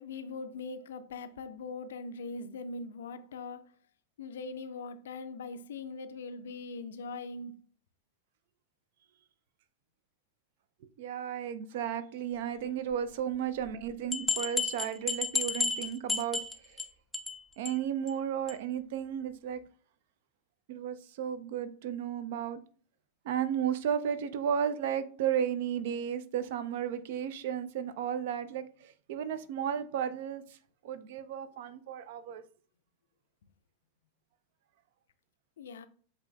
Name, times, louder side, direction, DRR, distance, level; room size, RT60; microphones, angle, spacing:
voice 1, 0.0-3.7 4.2-7.5 35.6-35.9, left 3 dB, 60° left, 0.4 m, -41 dB
voice 2, 11.0-16.4 16.7-16.8 17.6-19.6 20.7-22.6 23.2-30.4 30.8-32.5, right 9 dB, 55° right, 0.4 m, -34 dB
sound 1, 13.7-13.8 14.1-16.9 17.1-17.4 17.7-17.8 18.1-18.2 18.5-18.6, left 3 dB, 10° left, 0.5 m, -31 dB
8.0 x 2.9 x 2.3 m
figure-of-eight pair, 90°, 0 cm